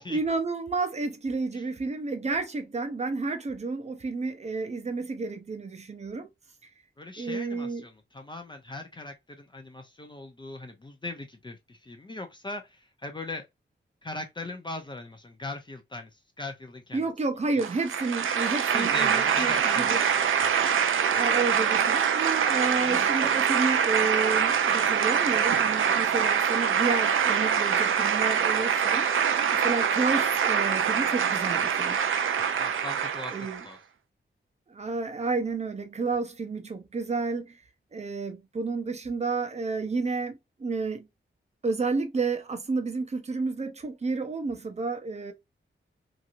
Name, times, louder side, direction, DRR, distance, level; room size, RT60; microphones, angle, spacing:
voice 1, 0.0-6.3 7.2-7.8 16.9-20.0 21.1-29.4 29.6-32.0 33.3-33.6 34.7-37.5 37.9-41.1 41.6-45.3, right 4 dB, 35° right, 0.6 m, -31 dB
voice 2, 7.0-13.5 14.0-17.1 17.5-17.6 18.7-19.9 20.4-20.9 32.6-33.4 33.6-33.8, left 2 dB, 25° left, 0.5 m, -40 dB
sound 1, 17.6-33.6, right 7 dB, 85° right, 0.4 m, -24 dB
2.9 x 2.6 x 2.4 m
wide cardioid pair, 140°, 20 cm